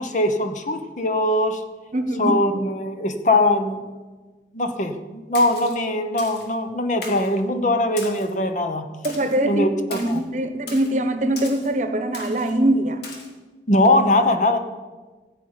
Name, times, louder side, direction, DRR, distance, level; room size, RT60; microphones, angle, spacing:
voice 1, 0.0-1.6 2.2-3.9 4.5-8.9 9.4-10.2 13.7-14.6, left 1 dB, 45° left, 8 dB, 1.0 m, -21 dB
voice 2, 1.9-2.4 9.0-13.0, right 1 dB, 45° right, 8 dB, 1.0 m, -22 dB
Splash splatter, 5.3-5.8 6.2-6.5 7.0-7.3 8.0-8.3 9.0-9.4 9.9-10.2 10.7-10.9 11.4-11.7 12.1-12.5 13.0-13.3, left 3 dB, 70° left, 2.5 m, -38 dB
15.5 x 5.1 x 9.7 m, 1.3 s
head